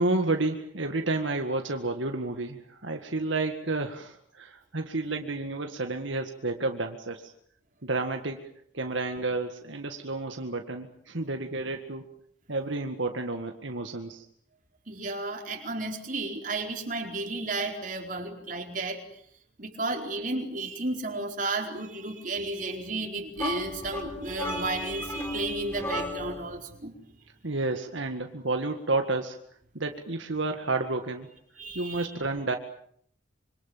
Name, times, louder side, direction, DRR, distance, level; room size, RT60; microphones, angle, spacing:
voice 1, 0.0-7.3 7.8-8.5 8.7-12.1 12.5-14.3 27.4-29.4 29.7-31.3 31.8-32.6, right 2 dB, 75° right, 5 dB, 1.9 m, -30 dB
voice 2, 14.9-19.0 19.6-26.9 31.6-32.1, right 2 dB, 40° right, 3 dB, 4.6 m, -33 dB
sound 1, 23.4-26.5, left 2 dB, 15° left, 3.9 m, -35 dB
26.0 x 25.5 x 7.4 m, 0.66 s
head